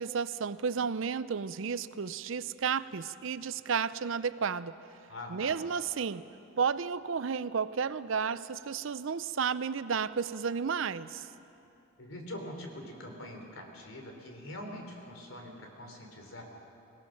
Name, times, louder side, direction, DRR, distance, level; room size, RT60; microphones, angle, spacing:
voice 1, 0.0-4.8 5.3-6.3 6.6-11.3, right 6 dB, 65° right, 15 dB, 0.5 m, -32 dB
voice 2, 5.1-5.6 12.0-16.4, left 1 dB, 70° left, 2 dB, 3.6 m, -44 dB
24.0 x 18.0 x 6.5 m, 2.8 s
head